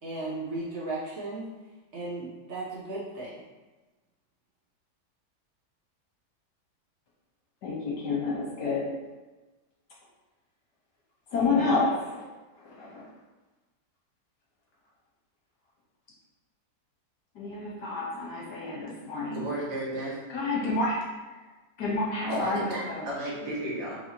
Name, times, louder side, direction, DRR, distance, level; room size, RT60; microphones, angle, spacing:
voice 1, 0.0-1.5 1.9-3.4, right 2 dB, 55° right, -7 dB, 0.9 m, -35 dB
voice 2, 7.6-8.9 11.3-12.2 12.6-13.1 17.3-19.5 20.3-21.0 21.8-23.1, left 3 dB, 80° left, -5 dB, 1.6 m, -29 dB
voice 3, 19.3-20.2 22.3-23.9, right 1 dB, 80° right, -5 dB, 1.6 m, -34 dB
4.1 x 2.9 x 2.8 m, 1.2 s
omnidirectional pair, 1.8 m